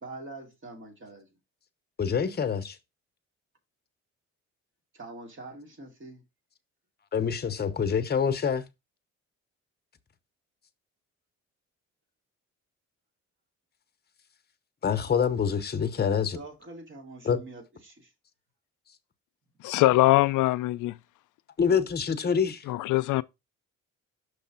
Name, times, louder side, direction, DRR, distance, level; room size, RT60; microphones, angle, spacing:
voice 1, 0.0-1.3 4.9-6.2 16.3-18.1, right 2 dB, 40° right, 2.4 m, -44 dB
voice 2, 2.0-2.8 7.1-8.7 14.8-16.4 17.2-17.4 21.6-22.6, left 7 dB, 30° left, 0.8 m, -26 dB
voice 3, 19.6-21.0 22.7-23.2, left 17 dB, 85° left, 0.5 m, -22 dB
6.0 x 3.2 x 5.7 m
cardioid pair, 90°, 30 cm